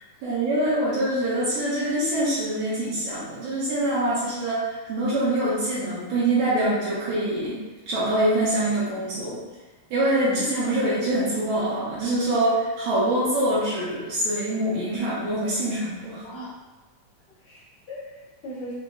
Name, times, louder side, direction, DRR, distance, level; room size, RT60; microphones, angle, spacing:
voice 1, 0.2-7.6 7.9-9.4 9.9-16.2, right 1 dB, 75° right, -8 dB, 1.7 m, -24 dB
voice 2, 16.2-16.6 17.4-18.7, equal, 80° left, -8 dB, 1.4 m, -39 dB
5.3 x 2.0 x 2.2 m, 1.2 s
omnidirectional pair, 3.7 m